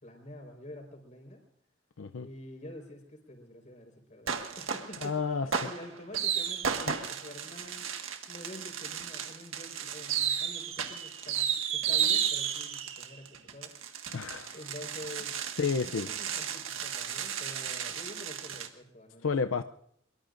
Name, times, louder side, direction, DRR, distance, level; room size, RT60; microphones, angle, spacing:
voice 1, 0.0-1.4 2.2-7.9 8.3-14.2 14.5-15.4 15.8-19.6, left 1 dB, 40° left, 4.6 m, -48 dB
sound 1, 4.3-5.1 5.5-18.7, right 8 dB, 90° right, 1.7 m, -33 dB
voice 2, 5.0-5.5 6.9-7.0 14.1-14.6 15.6-16.1 19.2-19.6, left 5 dB, 80° left, 0.6 m, -30 dB
24.0 x 23.0 x 2.6 m
head